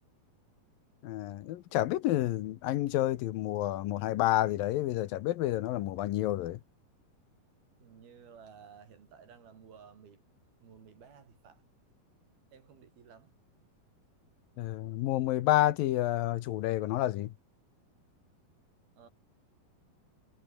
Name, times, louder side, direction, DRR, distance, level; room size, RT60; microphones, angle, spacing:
voice 1, 1.0-6.6 14.6-17.3, left 14 dB, 75° left, 2.6 m, -29 dB
voice 2, 7.8-10.2 10.6-11.6 12.5-13.3 19.0-19.1, right 7 dB, 80° right, 5.7 m, -55 dB
omnidirectional pair, 4.3 m